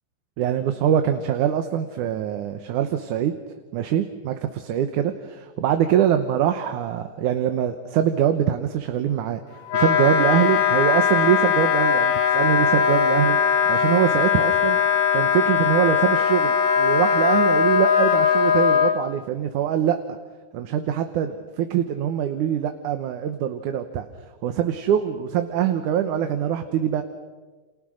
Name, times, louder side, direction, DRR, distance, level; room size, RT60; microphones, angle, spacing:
voice 1, 0.4-3.4 3.7-14.8 15.1-20.0 20.5-24.1 24.4-27.0, right 10 dB, 75° right, 7 dB, 2.6 m, -23 dB
Wind instrument woodwind instrument, 9.7-18.9, left 7 dB, 80° left, 3.1 m, -20 dB
30.0 x 28.0 x 6.4 m, 1.3 s
omnidirectional pair, 3.6 m